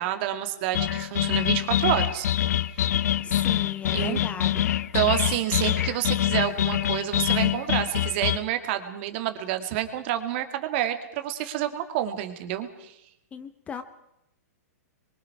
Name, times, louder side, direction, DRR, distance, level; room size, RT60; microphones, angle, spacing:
voice 1, 0.0-2.3 3.9-4.2 4.9-12.9, right 12 dB, 45° right, 7 dB, 2.3 m, -28 dB
sound 1, 0.7-8.4, left 12 dB, 75° left, 0.7 m, -25 dB
voice 2, 3.2-4.7 13.3-13.8, left 6 dB, 15° left, 11 dB, 0.8 m, -36 dB
27.0 x 23.0 x 4.9 m, 0.83 s
hypercardioid pair, 155°, 9 cm